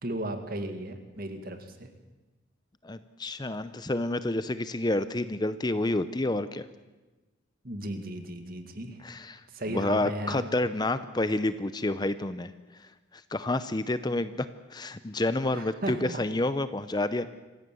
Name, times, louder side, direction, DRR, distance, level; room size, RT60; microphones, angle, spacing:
voice 1, 0.0-1.9 7.6-9.0 9.5-10.5 15.5-16.2, right 1 dB, 45° right, 7 dB, 2.2 m, -35 dB
voice 2, 2.8-6.7 9.0-9.4 9.7-12.5 12.8-17.3, left 2 dB, 20° left, 13 dB, 0.6 m, -29 dB
26.5 x 15.5 x 7.8 m, 1.2 s
head